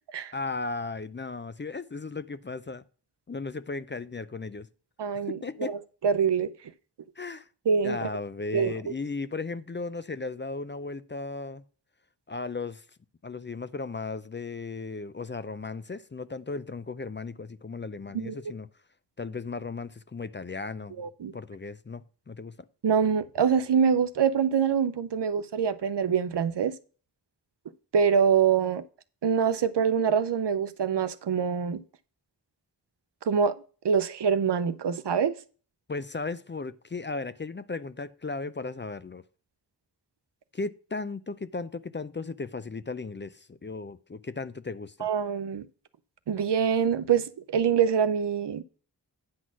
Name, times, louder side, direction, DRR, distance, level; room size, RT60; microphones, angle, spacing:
voice 1, 0.3-2.8 3.3-4.7 5.3-5.7 7.2-7.5 7.8-11.6 12.3-12.8 13.2-18.7 19.2-21.0 21.3-22.7 35.9-39.2 40.5-45.1, left 3 dB, 30° left, 0.4 m, -36 dB
voice 2, 5.0-5.8 6.0-6.5 7.7-8.0 8.5-8.7 18.1-18.4 21.0-21.3 22.8-26.7 27.9-28.8 29.2-31.8 33.2-33.5 33.8-35.4 45.0-45.6 46.3-48.6, right 7 dB, 75° right, 0.7 m, -25 dB
9.5 x 4.1 x 6.1 m
wide cardioid pair, 55°, 42 cm